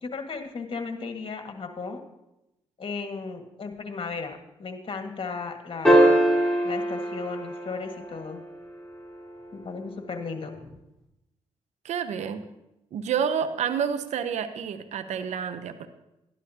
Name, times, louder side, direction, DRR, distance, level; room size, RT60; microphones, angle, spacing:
voice 1, 0.0-2.0 2.8-6.0 6.6-8.4 9.5-10.6, left 4 dB, 45° left, 5 dB, 1.7 m, -35 dB
sound 1, 5.8-8.4 10.6-10.7, right 1 dB, 5° left, 4.0 m, -21 dB
voice 2, 11.8-12.4 12.9-15.9, right 7 dB, 75° right, 10 dB, 0.8 m, -29 dB
12.0 x 11.5 x 2.8 m, 0.90 s
supercardioid pair, 50°, 12 cm